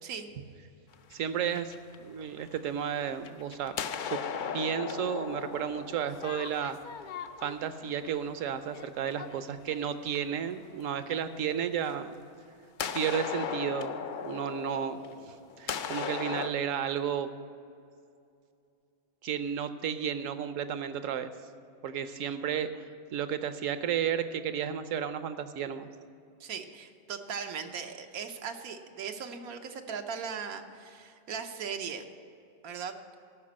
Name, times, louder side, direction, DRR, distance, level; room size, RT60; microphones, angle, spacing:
sound 1, 0.9-2.7 3.1-10.4 11.8-11.9 12.8-16.5, left 6 dB, 75° left, 0.4 m, -38 dB
voice 1, 1.1-1.7 2.0-3.8 4.0-4.2 4.5-6.8 7.4-12.2 12.9-17.3 19.2-21.3 21.8-25.9, right 8 dB, 70° right, 11 dB, 1.0 m, -33 dB
voice 2, 26.4-32.0 32.6-32.9, right 6 dB, 90° right, 5 dB, 1.3 m, -38 dB
14.5 x 5.9 x 7.5 m, 2.5 s
omnidirectional pair, 1.5 m